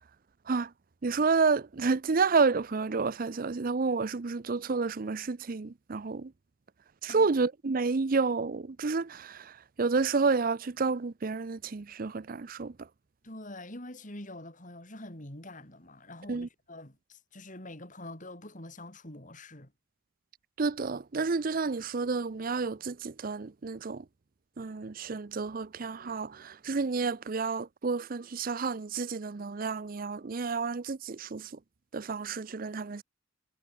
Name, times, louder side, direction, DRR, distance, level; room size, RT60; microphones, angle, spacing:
voice 1, 1.0-6.3 7.0-12.9 16.3-16.5 20.6-24.0 24.6-31.5 31.9-33.0, right 4 dB, 45° right, 0.6 m, -30 dB
voice 2, 13.2-19.7, left 1 dB, 40° left, 5.1 m, -45 dB
head